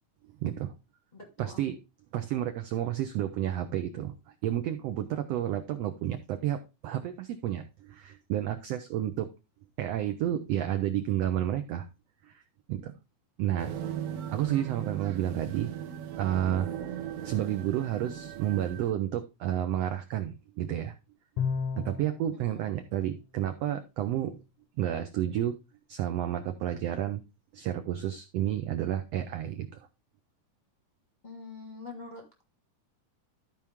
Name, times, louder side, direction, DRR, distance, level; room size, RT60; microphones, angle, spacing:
voice 1, 0.4-0.7 1.4-1.8 2.1-9.3 9.8-11.9 12.2-12.4 12.7-12.9 13.4-13.8 14.3-15.7 16.2-16.7 17.2-20.9 21.8-24.4 24.8-25.6 25.9-27.2 27.5-29.9, right 11 dB, 85° right, 8 dB, 1.4 m, -31 dB
voice 2, 1.1-1.6 31.2-32.4, left 3 dB, 30° left, 2 dB, 0.9 m, -44 dB
sound 1, 13.6-18.9, right 9 dB, 70° right, 1.5 m, -38 dB
Bowed string instrument, 21.4-22.3, left 6 dB, 70° left, 1.6 m, -31 dB
13.0 x 4.6 x 3.5 m, 0.27 s
omnidirectional pair, 3.7 m